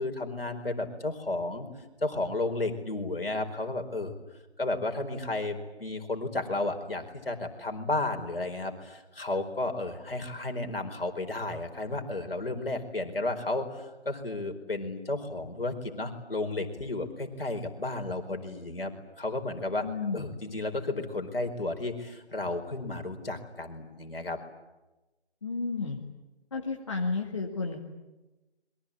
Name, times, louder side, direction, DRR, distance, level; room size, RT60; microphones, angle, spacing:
voice 1, 0.0-1.7 2.0-4.1 4.6-19.8 20.1-24.4, left 2 dB, 60° left, 5 dB, 4.6 m, -33 dB
voice 2, 19.8-20.3 25.4-26.0 26.5-27.8, left 4 dB, 30° left, 1 dB, 2.0 m, -32 dB
27.5 x 23.0 x 8.7 m, 1.1 s
figure-of-eight pair, 165°, 32 cm